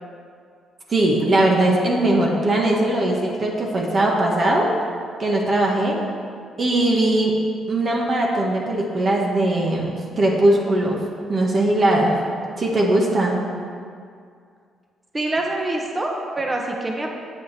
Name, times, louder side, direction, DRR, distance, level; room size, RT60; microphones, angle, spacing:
voice 1, 0.9-4.7 5.2-6.0 6.6-7.4 7.7-12.1 12.6-13.4, right 1 dB, 40° right, -2 dB, 1.7 m, -20 dB
voice 2, 15.1-17.1, right 2 dB, 25° right, 1 dB, 1.5 m, -25 dB
8.3 x 7.8 x 6.2 m, 2.2 s
cardioid pair, 90°, 0 cm